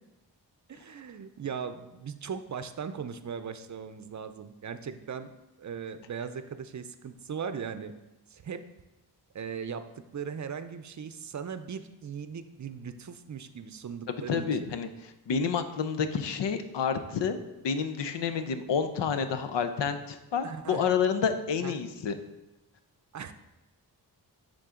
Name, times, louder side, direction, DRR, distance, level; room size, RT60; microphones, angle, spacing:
voice 1, 0.7-5.3 5.6-7.9 8.3-8.7 9.3-14.5 20.4-20.9 21.6-21.7 23.1-23.3, right 6 dB, 45° right, 10 dB, 0.5 m, -38 dB
voice 2, 14.1-17.4 17.6-22.2, left 6 dB, 85° left, 9 dB, 0.7 m, -29 dB
9.6 x 3.8 x 3.7 m, 1.0 s
cardioid pair, 65°, 42 cm